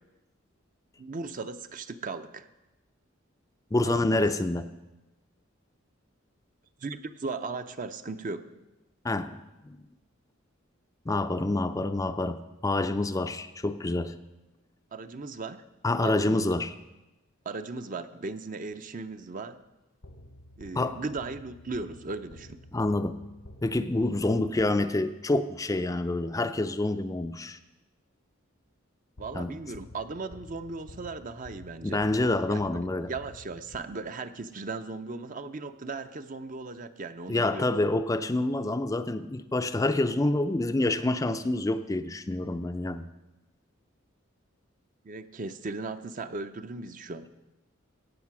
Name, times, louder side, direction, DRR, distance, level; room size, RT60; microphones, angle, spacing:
voice 1, 1.0-2.5 3.8-4.2 6.8-8.5 14.9-15.6 16.0-16.4 17.5-19.6 20.6-22.6 29.2-32.0 32.5-32.6 33.1-37.7 45.0-47.3, right 3 dB, 40° right, 10 dB, 0.6 m, -37 dB
voice 2, 3.7-4.7 9.0-9.8 11.1-14.1 15.8-16.7 20.8-21.0 22.7-23.2 23.6-27.6 29.3-29.5 31.8-33.1 37.3-43.1, left 2 dB, 15° left, 9 dB, 0.4 m, -27 dB
sound 1, 20.0-25.1 29.2-34.4, left 2 dB, 85° left, 1.1 m, -50 dB
15.5 x 8.2 x 6.0 m, 1.0 s
head